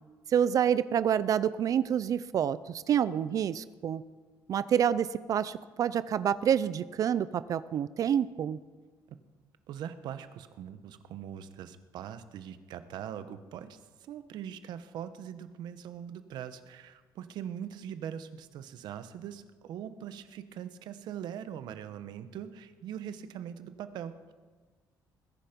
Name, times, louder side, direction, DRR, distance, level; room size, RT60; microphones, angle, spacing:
voice 1, 0.3-4.0 4.5-8.6, right 9 dB, 50° right, 16 dB, 0.5 m, -28 dB
voice 2, 9.7-13.8 14.1-24.3, right 9 dB, 75° right, 11 dB, 1.1 m, -41 dB
20.5 x 10.5 x 5.3 m, 1.4 s
cardioid pair, 125°, 7 cm